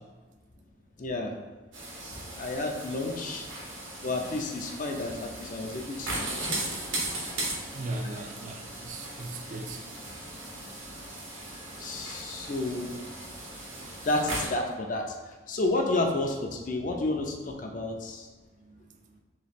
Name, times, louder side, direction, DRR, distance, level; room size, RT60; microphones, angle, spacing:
voice 1, 1.0-1.3 2.4-3.5 4.0-6.2 8.1-8.2 11.5-13.0 14.0-18.3, left 2 dB, 40° left, 2 dB, 0.4 m, -31 dB
sound 1, 1.7-14.5, right 1 dB, 85° right, 1.3 m, -38 dB
voice 2, 7.7-9.8, right 2 dB, 40° right, 4 dB, 0.3 m, -37 dB
3.1 x 3.0 x 4.1 m, 1.2 s
head